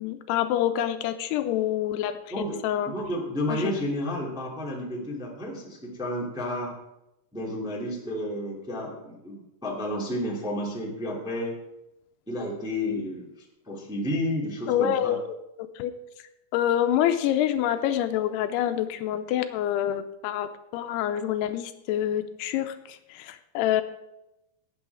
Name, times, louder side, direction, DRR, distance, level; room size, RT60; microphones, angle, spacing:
voice 1, 0.0-2.9 3.5-3.7 13.7-13.8 14.7-15.3 15.8-15.9 16.5-23.8, left 11 dB, 85° left, 9 dB, 2.6 m, -27 dB
voice 2, 2.8-6.7 7.3-11.5 12.3-15.1, left 1 dB, ahead, -3 dB, 1.5 m, -31 dB
18.5 x 8.8 x 3.5 m, 0.92 s
omnidirectional pair, 4.8 m